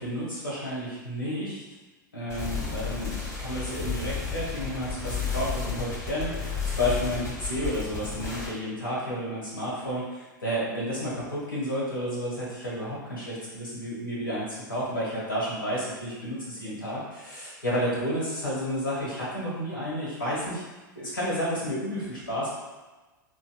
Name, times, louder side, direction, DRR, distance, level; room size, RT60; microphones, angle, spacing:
voice 1, 0.0-1.6 2.1-20.6 20.9-22.5, equal, 85° left, -7 dB, 1.2 m, -31 dB
sound 1, 2.3-8.5, left 5 dB, 30° left, 1.5 m, -32 dB
3.8 x 2.1 x 2.3 m, 1.2 s
hypercardioid pair, 95°, 11 cm